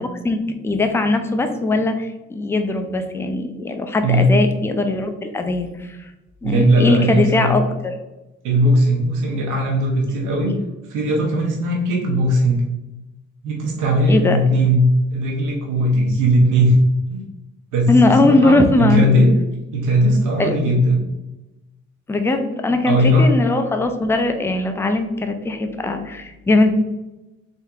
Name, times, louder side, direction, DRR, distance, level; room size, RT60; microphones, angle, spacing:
voice 1, 0.0-6.1 6.4-8.0 14.1-14.4 17.9-19.1 20.4-20.6 22.1-26.7, left 2 dB, 10° left, 6 dB, 0.4 m, -20 dB
voice 2, 6.4-7.5 8.4-10.5 10.9-12.7 13.4-14.8 15.1-16.8 17.1-17.2 17.7-19.3 19.7-21.0 22.8-23.3, equal, 90° right, -2 dB, 1.0 m, -18 dB
3.5 x 2.8 x 3.6 m, 1.0 s
cardioid pair, 90°, 30 cm